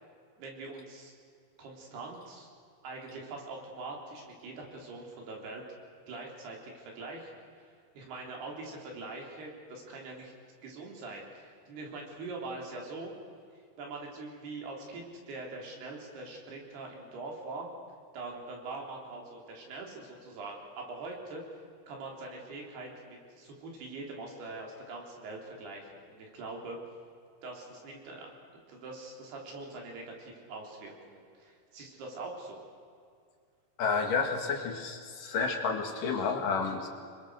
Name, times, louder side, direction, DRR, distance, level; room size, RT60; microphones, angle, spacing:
voice 1, 0.4-1.1 1.6-2.5 2.8-5.6 6.1-7.4 8.0-10.3 10.6-13.1 13.8-17.7 18.1-21.4 21.9-26.8 27.4-28.3 28.7-32.6, right 3 dB, 85° right, 0 dB, 5.8 m, -43 dB
voice 2, 33.8-36.9, left 5 dB, 60° left, 4 dB, 3.4 m, -30 dB
27.0 x 22.5 x 6.4 m, 2.3 s
omnidirectional pair, 4.5 m